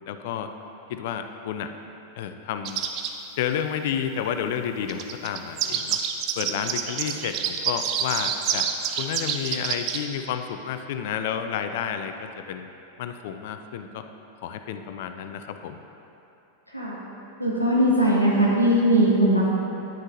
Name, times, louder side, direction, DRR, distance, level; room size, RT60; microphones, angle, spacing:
voice 1, 0.1-0.5 0.9-1.7 2.2-2.9 3.4-6.0 6.4-8.7 9.0-12.7 13.0-14.0 14.4-15.8, left 8 dB, 50° left, 8 dB, 0.5 m, -30 dB
sound 1, 2.7-3.1 4.9-10.1, right 8 dB, 40° right, 0.6 m, -27 dB
voice 2, 17.4-19.5, right 1 dB, 90° right, -6 dB, 1.8 m, -20 dB
10.0 x 9.6 x 2.7 m, 2.9 s
figure-of-eight pair, 90°, 0 cm